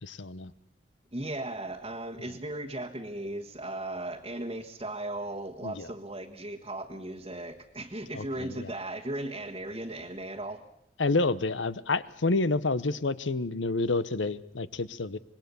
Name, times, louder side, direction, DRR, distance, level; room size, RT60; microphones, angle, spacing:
voice 1, 0.0-0.5 5.6-5.9 8.1-8.7 11.0-15.2, left 3 dB, 80° left, 16 dB, 0.9 m, -29 dB
voice 2, 1.1-10.6, right 1 dB, 30° right, 1 dB, 1.4 m, -37 dB
25.5 x 21.0 x 7.0 m, 0.81 s
head